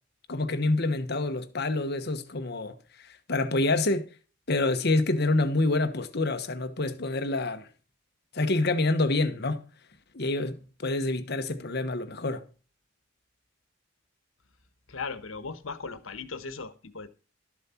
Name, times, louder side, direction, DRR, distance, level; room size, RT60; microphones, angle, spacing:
voice 1, 0.3-2.7 3.3-4.1 4.5-7.7 8.3-9.6 10.1-12.4, left 2 dB, 55° left, 1.1 m, -27 dB
voice 2, 14.9-17.1, left 4 dB, 85° left, 1.2 m, -37 dB
12.5 x 7.4 x 4.3 m
head